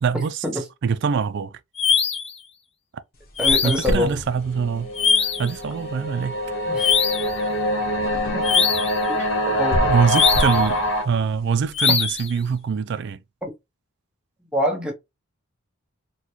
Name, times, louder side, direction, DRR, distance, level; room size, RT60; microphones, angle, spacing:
voice 1, 0.0-0.4 0.8-1.6 3.6-4.9 5.2-6.4 9.2-9.3 9.8-13.2, right 6 dB, 55° right, 0.4 m, -24 dB
sound 1, 1.8-2.3 3.4-3.9 5.0-5.5 6.8-7.3 8.4-9.0 10.1-10.7 11.7-12.3, left 6 dB, 30° left, 0.5 m, -21 dB
sound 2, 3.1-12.5, equal, 45° left, 0.9 m, -33 dB
voice 2, 3.4-4.2 6.7-6.9 8.3-8.6 9.1-9.2 9.5-9.9 11.9-12.0 14.5-14.9, left 1 dB, 5° right, 0.9 m, -25 dB
sound 3, 4.4-11.0, equal, 65° left, 1.0 m, -24 dB
3.9 x 2.2 x 3.0 m
head